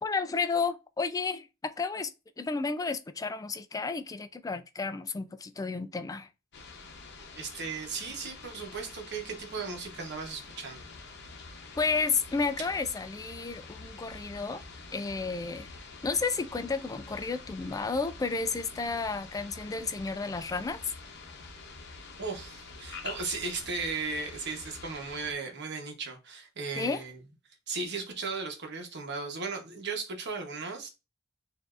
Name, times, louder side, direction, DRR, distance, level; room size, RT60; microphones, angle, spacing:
voice 1, 0.0-6.3 11.8-14.6 14.9-15.7 16.0-20.8 26.7-27.0, left 4 dB, 15° left, 0.3 m, -32 dB
sound 1, 6.5-25.3, left 4 dB, 55° left, 0.8 m, -47 dB
voice 2, 7.4-10.8 22.2-27.2 27.7-30.9, right 4 dB, 55° right, 1.0 m, -36 dB
6.7 x 2.6 x 2.4 m
head